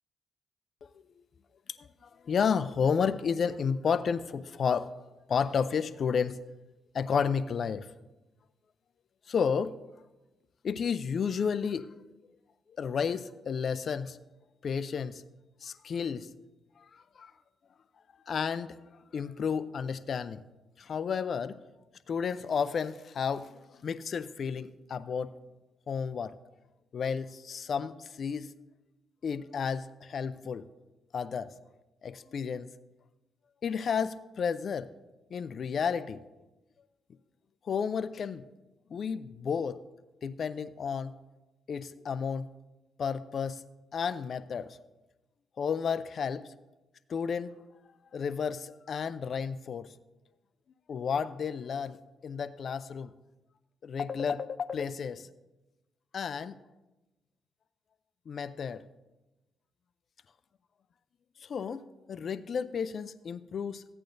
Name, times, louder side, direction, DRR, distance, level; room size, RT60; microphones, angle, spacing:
voice 1, 1.8-4.9 5.3-6.4 6.9-7.9 9.3-9.8 10.6-11.9 12.8-14.2 14.6-15.2 15.6-16.3 16.8-17.3 18.3-18.8 19.1-20.4 20.8-21.6 22.1-25.3 25.9-26.3 26.9-28.5 29.2-30.7 31.1-31.5 32.0-32.7 33.6-34.9 35.3-36.2 37.6-38.5 38.9-39.8 40.2-41.2 41.7-42.5 43.0-43.6 43.9-44.8 45.6-46.5 47.1-47.5 48.1-49.9 50.9-52.0 52.2-53.1 53.8-55.3 56.1-56.6 58.3-58.8 61.4-63.9, left 6 dB, 55° left, 15 dB, 0.4 m, -32 dB
15.0 x 8.8 x 2.6 m, 1.1 s
cardioid pair, 75°, 0 cm